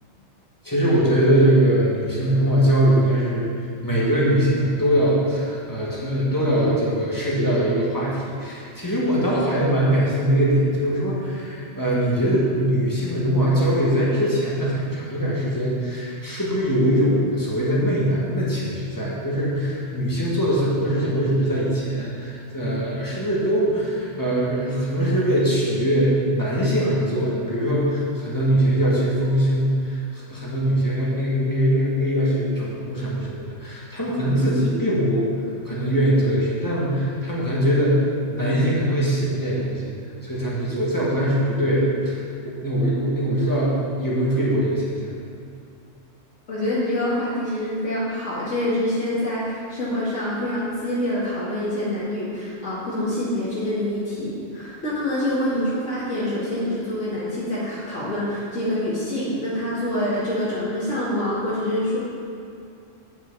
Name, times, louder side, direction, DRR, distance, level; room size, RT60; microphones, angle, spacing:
voice 1, 0.6-3.4 3.8-35.3 35.7-39.9 40.2-45.1, equal, 15° left, -7 dB, 2.1 m, -22 dB
voice 2, 46.5-62.0, left 1 dB, 70° left, -10 dB, 2.6 m, -26 dB
9.2 x 9.0 x 4.1 m, 2.5 s
omnidirectional pair, 1.3 m